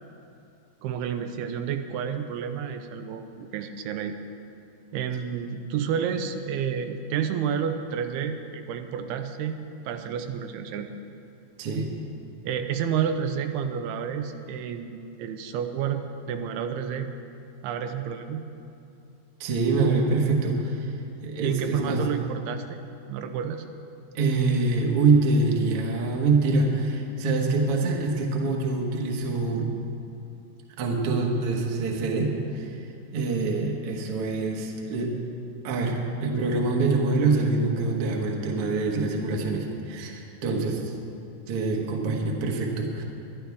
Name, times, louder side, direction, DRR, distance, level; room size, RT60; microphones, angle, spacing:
voice 1, 0.8-4.2 4.9-9.6 9.8-10.9 12.4-17.1 17.6-18.4 21.4-22.8 23.1-23.7, right 7 dB, 80° right, 7 dB, 2.6 m, -30 dB
voice 2, 19.4-20.9 21.2-22.0 24.1-29.7 30.8-32.8 33.1-35.2 35.6-40.9 41.5-43.0, right 3 dB, 55° right, 0 dB, 1.6 m, -25 dB
23.0 x 11.0 x 3.5 m, 2.6 s
omnidirectional pair, 4.6 m